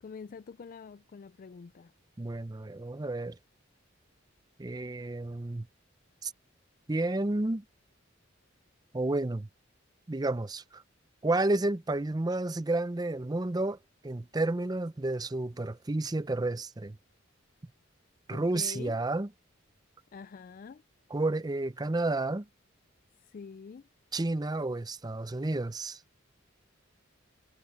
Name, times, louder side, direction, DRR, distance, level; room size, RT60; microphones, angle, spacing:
voice 1, 0.0-1.9 18.3-19.0 20.1-20.8 23.2-23.9, left 5 dB, 45° left, 0.3 m, -45 dB
voice 2, 2.2-3.4 4.6-5.7 6.2-6.3 6.9-7.6 8.9-9.5 10.1-10.8 11.2-13.8 14.0-17.0 18.3-19.3 21.1-22.5 24.1-26.0, right 2 dB, 20° right, 0.5 m, -31 dB
head